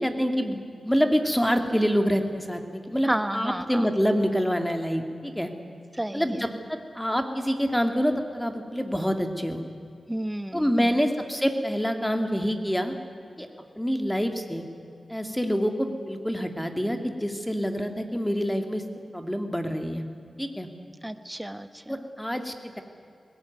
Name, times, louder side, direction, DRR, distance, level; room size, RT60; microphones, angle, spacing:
voice 1, 0.0-5.5 6.1-9.6 10.5-12.9 13.4-13.5 13.8-14.6 15.1-18.8 19.1-20.0 20.4-20.7 21.9-22.8, equal, 5° left, 5 dB, 2.5 m, -26 dB
voice 2, 3.0-3.9 5.9-6.4 10.1-11.0 21.0-22.1, right 1 dB, 10° right, 11 dB, 1.2 m, -32 dB
20.5 x 17.5 x 9.4 m, 2.5 s
cardioid pair, 60°, 0 cm